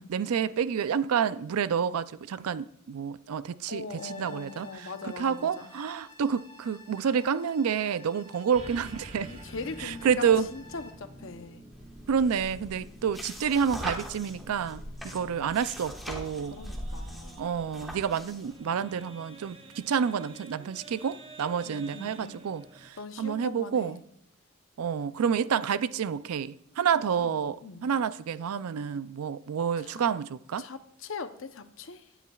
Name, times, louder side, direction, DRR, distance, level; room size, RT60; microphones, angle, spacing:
voice 1, 0.0-9.3 9.8-10.5 12.1-16.6 17.4-24.0 24.8-30.6, right 7 dB, 85° right, 0.4 m, -29 dB
voice 2, 3.7-5.7 9.3-11.6 16.5-17.5 21.6-22.4 23.0-24.0 26.9-27.3 27.6-27.9 29.8-30.1 30.6-32.0, left 4 dB, 60° left, 0.7 m, -41 dB
sound 1, 3.9-10.9, left 2 dB, 30° left, 1.6 m, -53 dB
sound 2, 8.5-22.9, right 1 dB, 25° right, 0.7 m, -49 dB
sound 3, 11.7-18.5, equal, ahead, 1.2 m, -41 dB
17.0 x 10.0 x 2.3 m
head